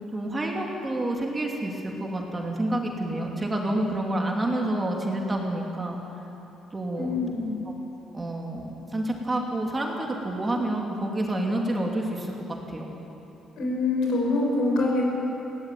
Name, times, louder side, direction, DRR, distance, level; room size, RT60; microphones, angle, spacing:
voice 1, 0.1-6.0 6.7-7.3 7.7-7.8 8.1-12.9, right 1 dB, 20° right, 0 dB, 2.8 m, -28 dB
voice 2, 7.0-7.5 13.6-15.0, left 2 dB, 75° left, -1 dB, 6.7 m, -25 dB
20.5 x 17.5 x 9.4 m, 3.0 s
cardioid pair, 130°, 0 cm